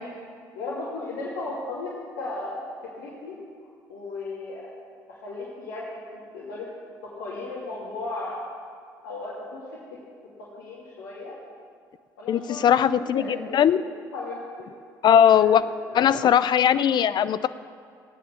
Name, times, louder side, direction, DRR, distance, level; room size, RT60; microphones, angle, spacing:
voice 1, 0.5-2.7 3.0-3.3 3.9-4.7 5.1-6.7 7.0-8.5 9.0-9.6 10.4-11.4 12.2-13.8 14.1-14.7 15.3-15.5 15.9-16.2, left 2 dB, 75° left, -7 dB, 2.6 m, -35 dB
voice 2, 12.3-13.8 15.0-15.6 15.9-17.5, left 9 dB, 45° left, 15 dB, 0.6 m, -19 dB
16.5 x 9.4 x 6.7 m, 2.2 s
hypercardioid pair, 55°, 10 cm